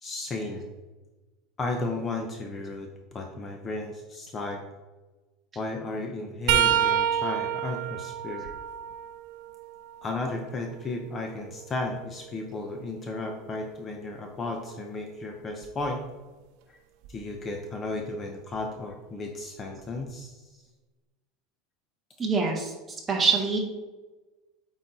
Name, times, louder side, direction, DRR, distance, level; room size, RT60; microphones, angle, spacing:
voice 1, 0.0-0.7 1.6-4.6 5.6-8.5 10.0-16.0 16.7-16.8 17.1-20.5, left 2 dB, 20° left, 3 dB, 0.6 m, -34 dB
sound 1, 6.5-10.2 10.8-12.7 15.6-15.8 17.0-17.2 18.5-18.6, right 10 dB, 60° right, 0.5 m, -29 dB
voice 2, 22.2-22.7 23.1-23.6, right 5 dB, 15° right, 0 dB, 1.2 m, -24 dB
8.5 x 4.0 x 4.1 m, 1.1 s
supercardioid pair, 160°, 0 cm